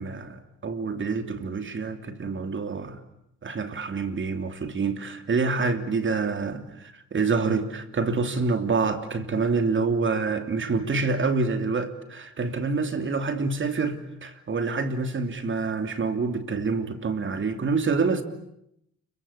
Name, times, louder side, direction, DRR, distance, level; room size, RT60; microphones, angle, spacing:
voice 1, 0.0-3.0 3.4-18.2, right 4 dB, 40° right, 3.0 m, -27 dB
30.0 x 23.0 x 8.6 m
cardioid pair, 90°, 30 cm